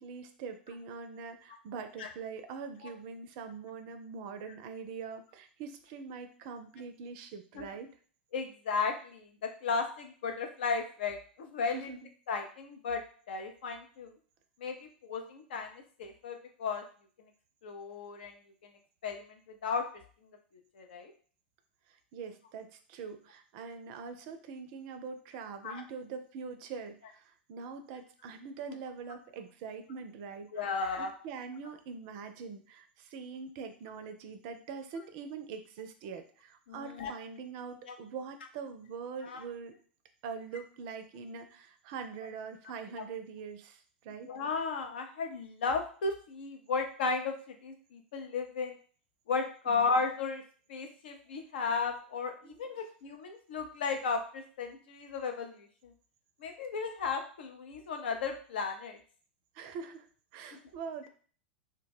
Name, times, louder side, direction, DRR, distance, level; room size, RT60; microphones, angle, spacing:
voice 1, 0.0-7.9 11.7-12.1 22.1-39.7 40.2-44.3 49.7-50.0 52.4-52.6 59.5-60.1 60.3-61.1, right 5 dB, 50° right, 8 dB, 0.4 m, -43 dB
voice 2, 8.3-11.9 12.3-14.1 14.6-16.8 17.6-18.3 19.0-19.9 20.8-21.1 25.6-25.8 28.7-28.8 30.5-31.1 36.7-37.1 37.9-38.0 39.2-39.4 44.2-47.4 47.6-48.8 49.3-50.4 50.7-55.9 56.4-59.0, left 4 dB, 65° left, 4 dB, 0.5 m, -35 dB
2.2 x 2.1 x 3.3 m, 0.43 s
figure-of-eight pair, 95°, 6 cm